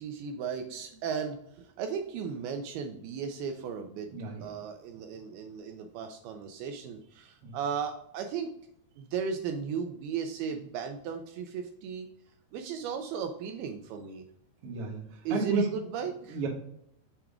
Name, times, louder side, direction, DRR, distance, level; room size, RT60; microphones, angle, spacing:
voice 1, 0.0-4.1 4.4-8.6 9.0-12.1 12.5-14.3 15.3-16.4, right 6 dB, 80° right, 5 dB, 2.4 m, -36 dB
voice 2, 4.1-4.4 7.4-7.6 14.6-15.0 15.3-15.6 16.3-16.5, right 3 dB, 60° right, -1 dB, 1.6 m, -31 dB
7.2 x 3.4 x 4.8 m, 0.75 s
omnidirectional pair, 4.7 m